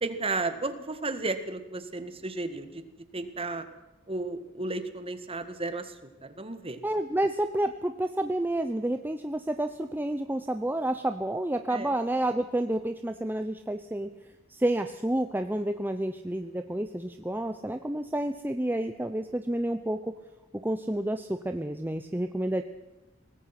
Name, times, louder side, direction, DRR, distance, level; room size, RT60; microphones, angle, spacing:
voice 1, 0.0-2.8 3.1-3.6 4.1-5.9 6.2-6.8 11.7-12.0, right 3 dB, 30° right, 10 dB, 1.8 m, -33 dB
voice 2, 6.8-14.1 14.5-20.1 20.6-22.6, right 1 dB, 10° right, 7 dB, 0.8 m, -29 dB
24.0 x 19.0 x 6.0 m, 1.0 s
head